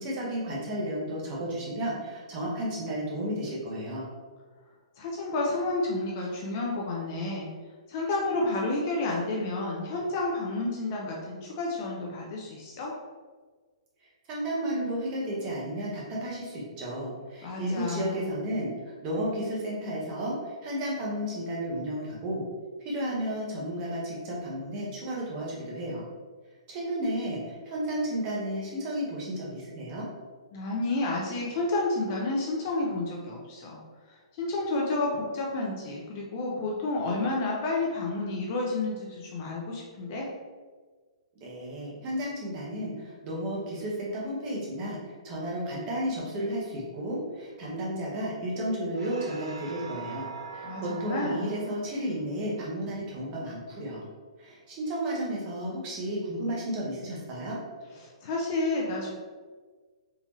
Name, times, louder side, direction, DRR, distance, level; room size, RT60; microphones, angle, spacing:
voice 1, 0.0-4.0 14.3-22.4 22.8-26.0 26.7-30.1 41.4-54.0 54.4-57.6, right 1 dB, 20° right, -5 dB, 0.8 m, -33 dB
voice 2, 5.0-7.5 7.9-12.9 17.4-18.3 30.5-33.8 34.4-40.3 50.6-51.5 58.2-59.1, left 2 dB, 25° left, -2 dB, 0.4 m, -30 dB
sound 1, 48.9-53.7, right 5 dB, 60° right, 0.5 m, -44 dB
3.6 x 2.7 x 3.0 m, 1.4 s
hypercardioid pair, 175°, 3 cm